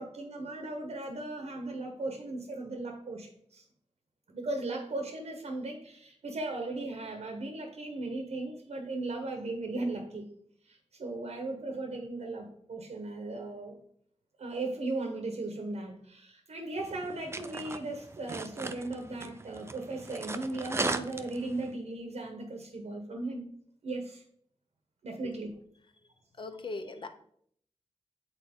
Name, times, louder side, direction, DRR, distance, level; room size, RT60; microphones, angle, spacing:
voice 1, 0.0-3.6 4.3-10.3 10.7-13.8 14.4-23.5 23.8-24.2 25.0-25.5, right 2 dB, 75° right, 4 dB, 0.9 m, -37 dB
sound 1, 16.8-21.7, right 3 dB, 25° right, 0.4 m, -38 dB
voice 2, 26.4-27.1, left 3 dB, 45° left, 7 dB, 0.7 m, -39 dB
8.3 x 4.2 x 3.6 m, 0.66 s
wide cardioid pair, 105°, 11 cm